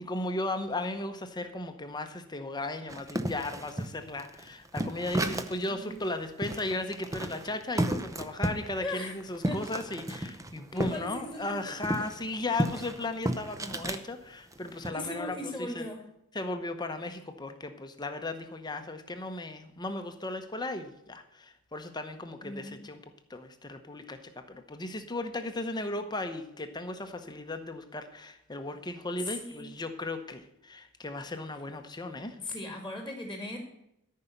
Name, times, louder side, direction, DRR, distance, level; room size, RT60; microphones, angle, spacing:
voice 1, 0.0-15.8 16.3-23.0 23.3-32.4, left 2 dB, 20° left, 7 dB, 0.9 m, -36 dB
sound 1, 2.9-5.7 6.0-6.1 6.4-11.0 11.3-14.0 14.5-14.9, right 1 dB, 15° right, 0.7 m, -33 dB
voice 2, 5.7-6.0 8.8-9.1 9.4-9.6 10.7-11.7 14.9-16.0 22.4-22.8 29.2-29.7 32.4-33.6, left 1 dB, 5° left, 3 dB, 1.8 m, -38 dB
13.5 x 5.6 x 8.0 m, 0.83 s
head